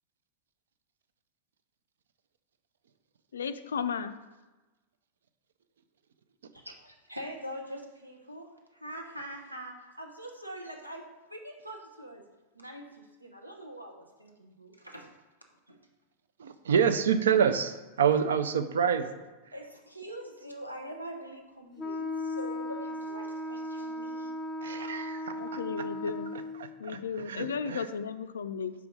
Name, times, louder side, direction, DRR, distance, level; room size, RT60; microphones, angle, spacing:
voice 1, 3.3-4.1 25.3-26.3 26.8-28.7, left 6 dB, 65° left, 11 dB, 0.4 m, -34 dB
voice 2, 6.5-12.3 12.5-15.1 15.7-15.8 19.5-24.3, right 1 dB, 85° right, 2 dB, 0.8 m, -44 dB
voice 3, 16.4-19.1 24.6-25.6 26.6-27.9, right 7 dB, 65° right, 10 dB, 0.4 m, -27 dB
Wind instrument woodwind instrument, 21.8-26.6, left 1 dB, 30° left, 0.6 m, -36 dB
4.8 x 4.6 x 5.1 m, 1.2 s
figure-of-eight pair, 90°, 0 cm